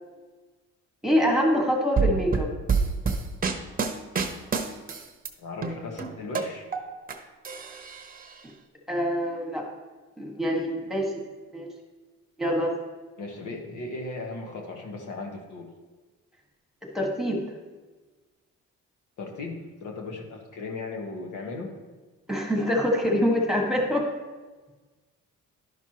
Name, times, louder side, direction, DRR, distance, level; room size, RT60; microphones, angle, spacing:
voice 1, 1.0-2.5 8.9-9.6 10.2-11.1 11.5-11.7 12.4-12.7 16.9-17.4 22.3-24.1, equal, ahead, 0 dB, 1.7 m, -25 dB
sound 1, 2.0-5.3 5.6-7.1 7.4-8.3, right 5 dB, 30° right, 0.8 m, -27 dB
voice 2, 5.4-6.6 13.2-15.6 19.2-21.7, left 3 dB, 85° left, 1 dB, 1.4 m, -37 dB
11.0 x 6.0 x 3.0 m, 1.3 s
cardioid pair, 90°, 30 cm